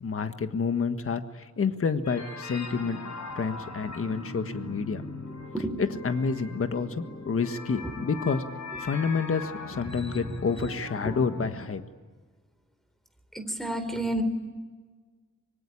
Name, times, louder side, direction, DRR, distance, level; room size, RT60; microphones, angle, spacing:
voice 1, 0.0-5.0 5.8-8.4 8.8-11.8, left 5 dB, 50° left, 8 dB, 1.5 m, -29 dB
sound 1, 2.0-11.7, left 3 dB, 70° left, 6.4 m, -40 dB
voice 2, 13.3-14.2, right 1 dB, ahead, 8 dB, 3.8 m, -30 dB
25.5 x 24.0 x 9.9 m, 1.4 s
wide cardioid pair, 140°, 29 cm